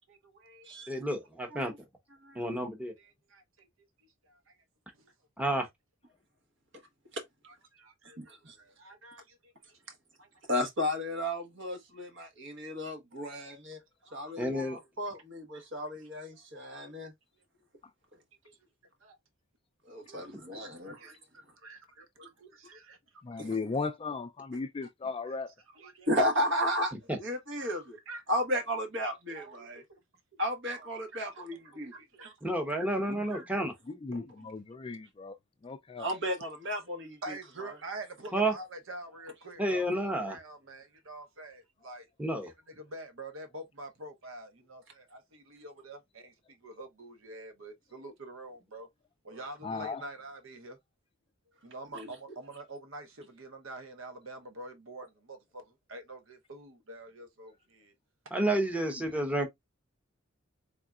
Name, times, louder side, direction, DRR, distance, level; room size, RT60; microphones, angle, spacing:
voice 1, 0.0-1.0 3.0-3.7 4.3-4.5 5.0-5.1 7.5-9.8 10.2-10.3 14.0-14.1 15.5-15.7 18.4-18.6 19.0-19.2 20.1-23.0 23.3-23.4 25.8-26.1 27.6-27.7 28.1-28.2 29.3-29.8 30.7-30.9 31.4-31.5 31.9-32.3 33.3-33.5 37.2-42.0 42.4-48.9 49.2-50.8 51.6-55.6 55.9-57.9, right 2 dB, 80° right, 0.9 m, -47 dB
voice 2, 0.9-1.7 2.3-2.9 5.4-5.7 14.4-14.8 27.1-27.2 32.4-33.7 38.3-38.5 39.6-40.4 42.2-42.5 58.3-59.5, right 1 dB, 5° right, 0.9 m, -30 dB
voice 3, 8.2-8.5 10.5-13.8 14.1-17.1 19.9-21.0 23.4-23.5 26.1-26.9 27.2-28.0 28.3-29.8 30.4-31.9 34.1-34.2 36.0-37.8 49.3-49.5 51.9-52.1, equal, 65° right, 1.3 m, -34 dB
voice 4, 23.2-25.5 33.1-33.2 33.9-35.4 35.6-36.1 49.6-50.0, left 4 dB, 25° left, 0.3 m, -36 dB
3.9 x 3.7 x 2.4 m
head